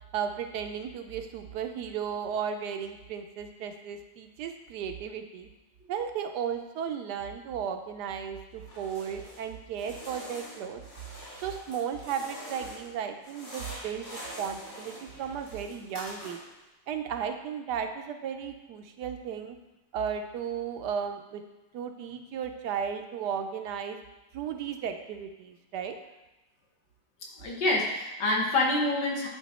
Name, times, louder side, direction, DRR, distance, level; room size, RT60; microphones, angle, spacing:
voice 1, 0.1-5.5 5.9-10.8 11.4-16.4 16.9-19.6 19.9-21.4 21.7-24.0 24.3-26.0, right 7 dB, 75° right, 6 dB, 1.1 m, -35 dB
sound 1, 8.6-9.5 9.7-12.9 13.2-16.6, equal, 55° left, 3.3 m, -45 dB
voice 2, 27.4-29.3, left 2 dB, 75° left, -2 dB, 2.0 m, -26 dB
10.5 x 3.7 x 4.2 m, 1.0 s
omnidirectional pair, 1.9 m